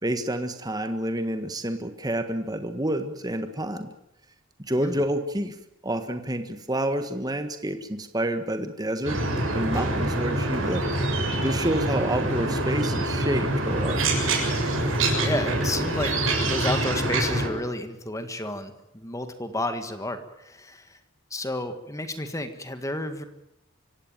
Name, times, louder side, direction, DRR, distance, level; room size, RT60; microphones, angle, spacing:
voice 1, 0.0-3.9 4.7-5.6 5.8-9.2 9.5-10.8 11.4-14.0, right 1 dB, 20° right, 8 dB, 1.5 m, -28 dB
sound 1, 9.0-17.5, right 1 dB, 70° right, 7.2 m, -25 dB
voice 2, 15.2-16.1 16.4-21.0 21.3-23.2, left 1 dB, 15° left, 9 dB, 1.7 m, -31 dB
25.0 x 16.5 x 9.1 m, 0.86 s
head